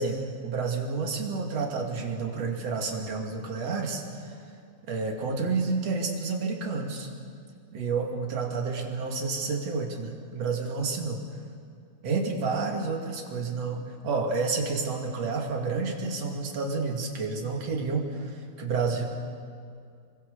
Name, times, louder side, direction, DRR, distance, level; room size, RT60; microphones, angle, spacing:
voice 1, 0.0-4.4 4.9-7.1 7.7-11.2 12.0-19.1, right 4 dB, 45° right, 2 dB, 3.1 m, -30 dB
27.0 x 23.0 x 6.9 m, 2.3 s
omnidirectional pair, 4.8 m